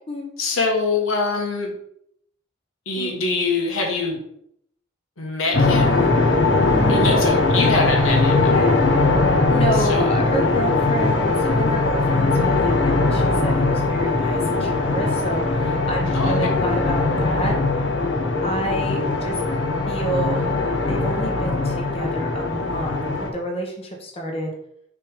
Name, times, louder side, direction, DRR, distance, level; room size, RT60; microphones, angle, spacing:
voice 1, 0.4-1.8 2.8-4.2 5.2-6.4 6.9-8.7 9.7-10.3 16.1-16.5, left 3 dB, 90° left, 1 dB, 1.5 m, -24 dB
sound 1, 5.5-23.3, left 3 dB, 60° left, 0.9 m, -20 dB
voice 2, 6.7-7.3 8.5-8.8 9.2-17.6 18.4-19.4 19.9-20.4 20.9-24.5, right 1 dB, 30° left, 1 dB, 1.0 m, -29 dB
6.6 x 3.4 x 5.0 m, 0.72 s
head